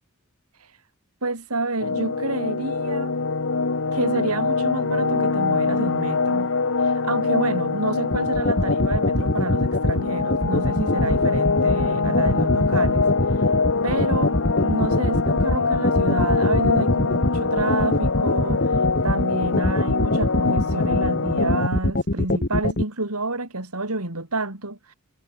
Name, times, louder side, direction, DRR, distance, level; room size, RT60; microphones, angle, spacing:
voice 1, 1.2-3.2 3.9-6.5 6.8-13.5 13.8-14.4 14.6-24.9, right 2 dB, 80° right, 4.4 m, -29 dB
sound 1, 1.8-21.6, left 4 dB, 65° left, 1.2 m, -24 dB
sound 2, 8.1-22.8, left 1 dB, 45° left, 2.3 m, -22 dB
head